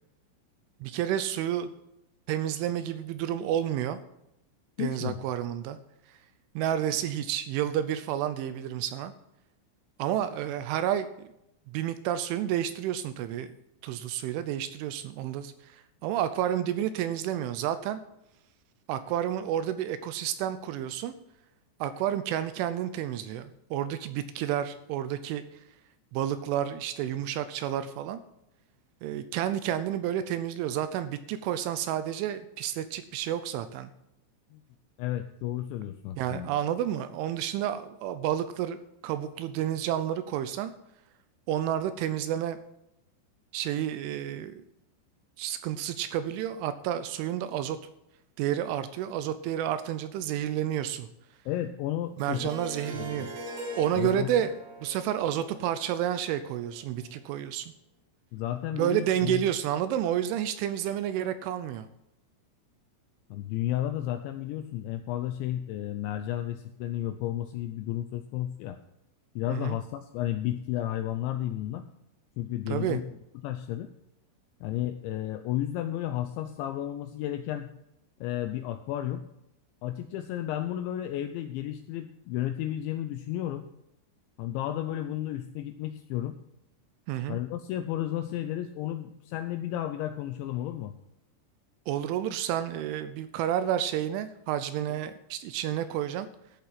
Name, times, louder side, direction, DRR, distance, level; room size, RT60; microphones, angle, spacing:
voice 1, 0.8-1.7 2.3-4.0 4.8-5.8 6.6-9.1 10.0-11.3 11.7-13.5 13.8-18.0 18.9-21.1 21.8-25.4 26.1-28.2 29.0-33.9 36.2-38.8 39.0-40.7 41.5-42.6 43.5-44.6 45.4-47.8 48.4-51.1 52.2-53.3 53.8-54.5 54.8-57.7 58.8-61.9 69.5-69.8 72.7-73.0 87.1-87.4 91.9-96.3, right 11 dB, 80° right, 12 dB, 3.0 m, -30 dB
voice 2, 4.8-5.2 34.5-34.6 35.0-36.5 51.5-52.4 52.9-53.3 53.9-54.3 58.3-59.4 63.3-68.8 69.4-71.8 72.4-73.0 73.4-73.9 74.6-77.7 78.2-79.2 79.8-83.6 84.4-86.4 87.3-90.9, left 12 dB, 85° left, 8 dB, 2.6 m, -32 dB
Harp, 52.2-57.1, left 1 dB, 60° right, 4.2 m, -42 dB
13.5 x 7.1 x 5.8 m, 0.83 s
omnidirectional pair, 5.9 m